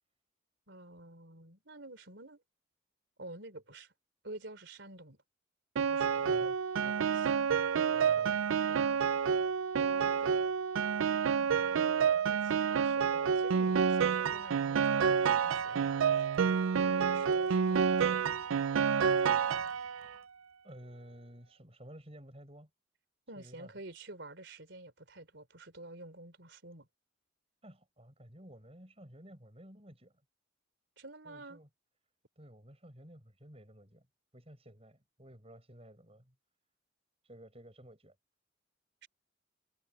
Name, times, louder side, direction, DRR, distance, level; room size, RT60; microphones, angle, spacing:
voice 1, 0.7-2.4 3.2-3.9 4.2-5.2 5.9-6.4 6.8-7.3 7.9-8.3 8.7-9.0 9.8-10.5 11.4-16.1 16.9-18.4 23.3-26.9 31.0-31.6 39.0-39.1, right 2 dB, 60° right, 4.4 m, -50 dB
Piano, 5.8-20.1, right 6 dB, 90° right, 0.4 m, -29 dB
voice 2, 6.2-6.6 8.0-8.4 20.6-22.7 23.4-23.7 27.6-30.2 31.2-31.7 32.4-34.1 34.3-36.3 37.2-38.2, equal, 30° right, 7.7 m, -53 dB
Liquid, 16.1-20.4 20.7-20.8, right 1 dB, 15° right, 5.7 m, -69 dB
head